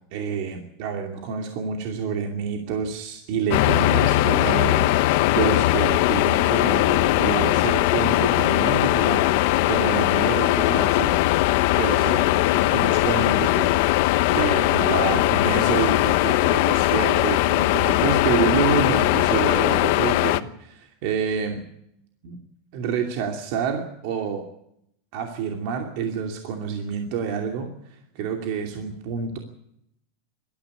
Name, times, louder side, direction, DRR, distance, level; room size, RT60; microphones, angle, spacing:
voice 1, 0.1-11.2 11.8-21.6 22.2-22.4 22.7-24.5 25.1-29.4, right 6 dB, 55° right, 3 dB, 2.6 m, -28 dB
sound 1, 3.5-20.4, left 17 dB, 60° left, 1.0 m, -20 dB
20.5 x 13.5 x 9.7 m, 0.77 s
supercardioid pair, 150°, 0 cm